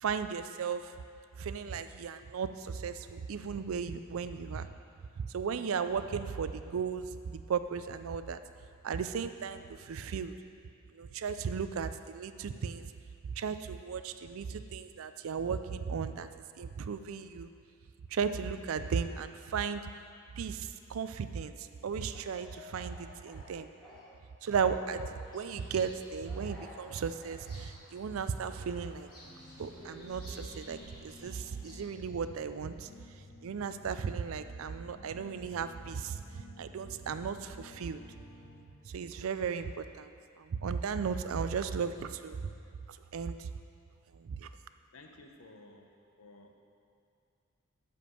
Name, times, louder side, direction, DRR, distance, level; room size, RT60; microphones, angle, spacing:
voice 1, 0.0-0.9 1.4-4.7 5.2-8.4 8.8-10.3 10.9-12.9 13.2-16.3 16.6-17.5 18.1-19.8 20.3-23.7 24.4-29.1 29.6-32.9 33.4-38.0 38.8-40.1 40.4-42.5 42.9-43.5 44.1-44.5, right 6 dB, 80° right, 11 dB, 0.4 m, -35 dB
Speech / Cough, 21.9-24.2 24.5-25.3 26.2-27.4 28.4-30.7, left 1 dB, ahead, 1.8 m, -53 dB
Bird vocalization bird call bird song, 25.3-32.0, equal, 20° left, 1.9 m, -55 dB
sound 1, 29.2-38.6, left 2 dB, 60° left, 1.8 m, -54 dB
voice 2, 44.9-45.9 46.2-46.6, left 2 dB, 85° left, 3 dB, 0.9 m, -54 dB
7.7 x 5.2 x 6.8 m, 2.4 s
head